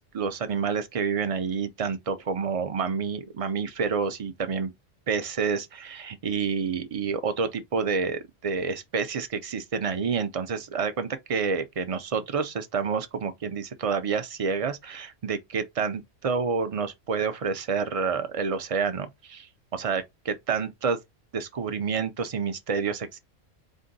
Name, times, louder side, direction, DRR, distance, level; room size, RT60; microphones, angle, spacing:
voice 1, 0.0-4.7 5.1-19.5 19.7-21.0 21.3-23.2, right 5 dB, 65° right, 0.3 m, -28 dB
4.3 x 2.5 x 3.9 m
omnidirectional pair, 1.3 m